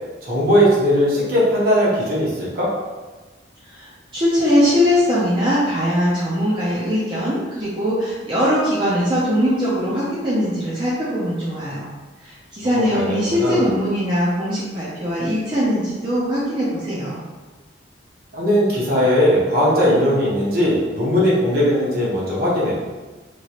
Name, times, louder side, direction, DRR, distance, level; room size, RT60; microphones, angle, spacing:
voice 1, 0.2-2.7 12.6-13.7 18.3-22.8, equal, 50° right, -7 dB, 1.1 m, -18 dB
voice 2, 3.7-11.9 12.2-17.2, equal, 25° right, -10 dB, 0.6 m, -21 dB
3.0 x 2.9 x 2.9 m, 1.3 s
head